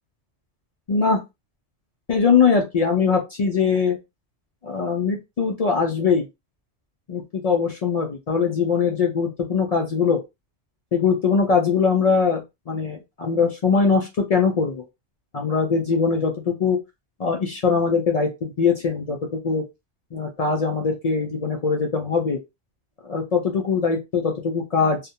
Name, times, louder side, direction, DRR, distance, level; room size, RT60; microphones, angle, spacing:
voice 1, 0.9-1.2 2.1-4.0 4.6-6.2 7.1-10.2 10.9-14.8 15.3-16.8 17.2-19.6 20.1-22.4 23.0-25.0, left 5 dB, 70° left, 2 dB, 0.3 m, -21 dB
2.3 x 2.1 x 2.7 m, 0.22 s
omnidirectional pair, 1.2 m